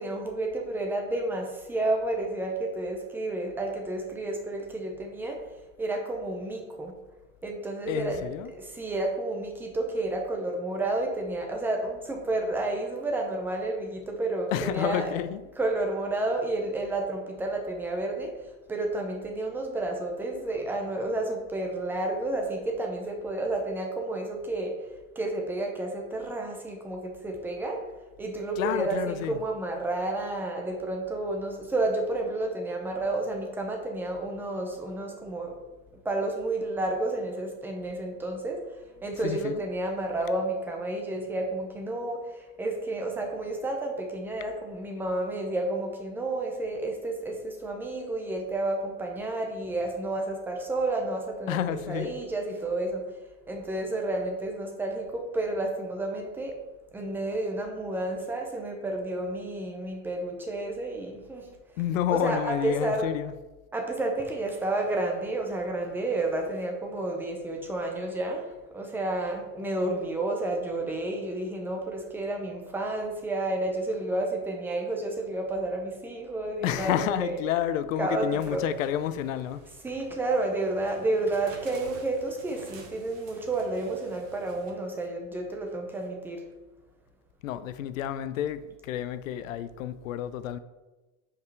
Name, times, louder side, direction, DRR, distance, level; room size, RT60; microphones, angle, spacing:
voice 1, 0.0-5.4 5.8-7.0 7.4-15.1 15.6-27.8 28.2-35.6 36.0-51.6 51.9-53.2 53.5-56.6 56.9-61.5 62.1-63.1 63.7-77.4 78.0-78.7 79.8-86.5, right 2 dB, 5° right, 0.6 m, -31 dB
voice 2, 7.9-8.5 14.5-15.4 28.6-29.4 39.2-39.6 51.5-52.2 61.8-63.3 76.6-79.6 87.4-90.6, left 11 dB, 75° left, 0.6 m, -30 dB
sound 1, 78.3-84.7, right 6 dB, 70° right, 1.4 m, -51 dB
5.4 x 5.0 x 4.6 m
supercardioid pair, 150°, 40 cm